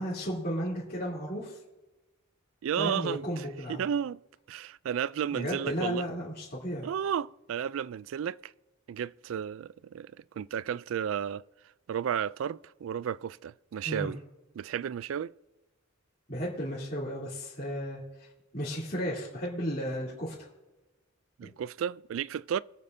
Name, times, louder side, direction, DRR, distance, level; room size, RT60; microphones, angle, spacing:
voice 1, 0.0-1.6 2.8-3.8 5.3-6.9 13.8-14.1 16.3-18.0 18.5-20.5 21.4-21.5, equal, 40° left, 3.1 m, -34 dB
voice 2, 2.6-4.2 4.5-6.0 6.8-8.5 8.9-11.4 11.9-14.2 14.6-15.3 21.4-22.6, right 8 dB, 70° right, 0.3 m, -33 dB
24.0 x 8.5 x 2.7 m
head